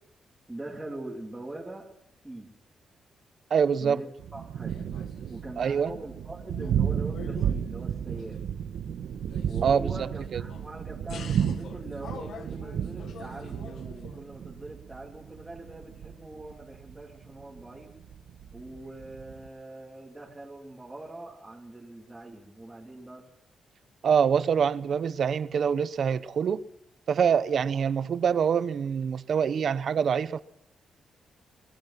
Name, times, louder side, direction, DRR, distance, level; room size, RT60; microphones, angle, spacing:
voice 1, 0.5-1.9 2.2-2.5 3.8-4.8 5.3-8.4 9.4-17.9 18.5-23.2, right 2 dB, 10° right, 3.0 m, -42 dB
voice 2, 3.5-4.0 5.6-5.9 9.6-10.4 24.0-26.6 27.1-30.4, right 7 dB, 55° right, 0.9 m, -25 dB
Thunder, 4.2-19.5, right 9 dB, 80° right, 1.4 m, -33 dB
sound 1, 4.7-5.7 6.1-6.9 7.1-8.7 9.2-10.7 11.1-14.2, left 7 dB, 70° left, 2.0 m, -46 dB
23.0 x 21.0 x 5.9 m
wide cardioid pair, 150°, 0 cm